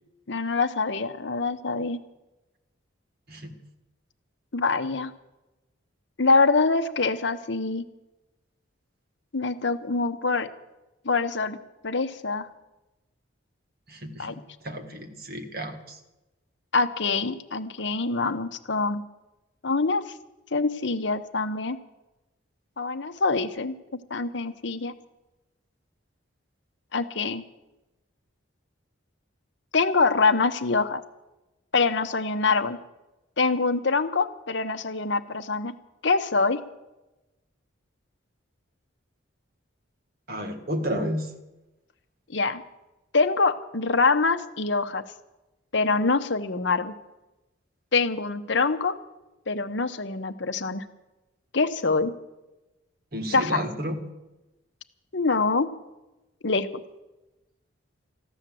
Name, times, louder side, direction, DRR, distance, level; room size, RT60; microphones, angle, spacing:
voice 1, 0.3-2.0 4.5-5.1 6.2-7.9 9.3-10.5 11.0-11.6 11.8-12.5 14.2-14.3 16.7-19.0 19.6-20.0 20.5-21.8 22.8-23.7 24.1-24.9 26.9-27.4 29.7-31.0 31.7-32.8 33.4-35.7 36.0-36.6 42.3-42.6 43.1-45.0 45.7-46.9 47.9-49.0 49.5-50.8 51.5-52.1 53.3-53.7 55.1-55.7 56.4-56.7, left 4 dB, 60° left, 10 dB, 0.9 m, -24 dB
voice 2, 13.9-14.4 14.6-16.0 40.3-41.3 53.1-54.0, equal, 45° right, 6 dB, 1.8 m, -32 dB
14.5 x 11.5 x 7.7 m, 1.0 s
head